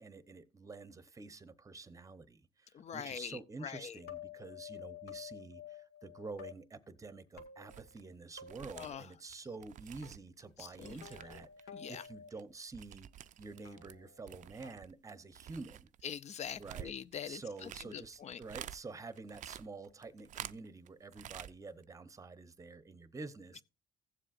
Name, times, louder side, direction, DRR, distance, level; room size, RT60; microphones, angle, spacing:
voice 1, 0.0-13.1 13.4-15.9 16.6-16.9 17.2-23.6, right 3 dB, 20° right, 0.8 m, -48 dB
voice 2, 2.7-4.0 8.8-9.1 10.6-11.0 11.3-11.4 11.7-12.0 16.0-18.4, left 8 dB, 40° left, 0.5 m, -44 dB
sound 1, 4.0-6.5 7.4-8.1 8.4-8.8 10.0-10.1 11.0-12.3 13.7-14.7, left 9 dB, 75° left, 1.8 m, -50 dB
sound 2, 7.7-8.0 8.3-11.6 11.9-14.0 14.2-18.8 19.1-20.9 21.1-21.5 21.8-21.9, right 11 dB, 50° right, 0.4 m, -50 dB
16.0 x 7.4 x 2.5 m
cardioid pair, 110°, 17 cm